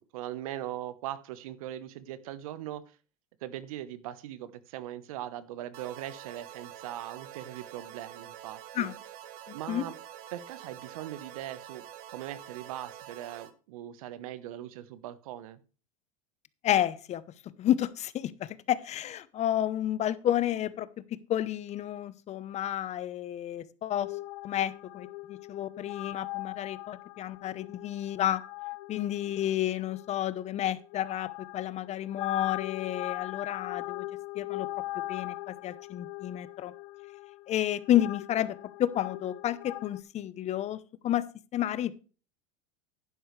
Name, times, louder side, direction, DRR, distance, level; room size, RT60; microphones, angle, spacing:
voice 1, 0.1-3.0 3.4-8.9 9.5-9.9 10.3-15.6, right 12 dB, 75° right, 15 dB, 1.1 m, -40 dB
sound 1, 5.7-13.5, right 11 dB, 55° right, 1.4 m, -47 dB
voice 2, 16.6-17.2 17.6-24.1 24.4-28.4 28.9-34.0 34.3-34.7 34.9-36.7 37.5-41.2 41.5-41.9, left 12 dB, 40° left, 17 dB, 0.9 m, -31 dB
sound 2, 24.0-40.0, left 19 dB, 65° left, 0.9 m, -41 dB
11.0 x 10.5 x 3.3 m, 0.36 s
hypercardioid pair, 100°, 18 cm